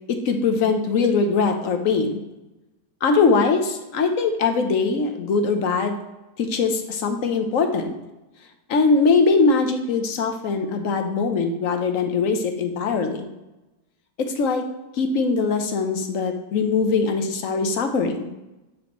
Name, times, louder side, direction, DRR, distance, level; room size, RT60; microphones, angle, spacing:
voice 1, 0.1-2.2 3.0-6.0 6.4-7.9 8.7-13.3 14.2-14.7 14.9-18.3, left 4 dB, 60° left, 5 dB, 1.1 m, -21 dB
8.5 x 5.1 x 3.0 m, 1.0 s
omnidirectional pair, 1.8 m